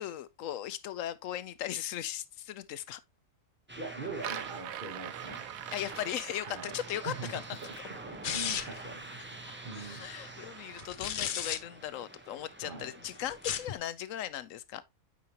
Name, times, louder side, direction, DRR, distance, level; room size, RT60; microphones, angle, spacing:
voice 1, 0.0-3.0 5.7-7.6 9.7-14.8, left 11 dB, 75° left, 0.9 m, -38 dB
sound 1, 3.7-13.8, right 1 dB, 10° right, 0.6 m, -48 dB
voice 2, 3.8-5.5 6.4-9.4 9.6-10.1 12.6-12.9, right 3 dB, 40° right, 1.2 m, -43 dB
sound 2, 4.2-10.9, right 11 dB, 90° right, 1.1 m, -45 dB
sound 3, 8.2-8.9 10.8-11.6 13.3-13.8, left 8 dB, 55° left, 0.5 m, -33 dB
8.5 x 5.0 x 2.8 m
omnidirectional pair, 1.4 m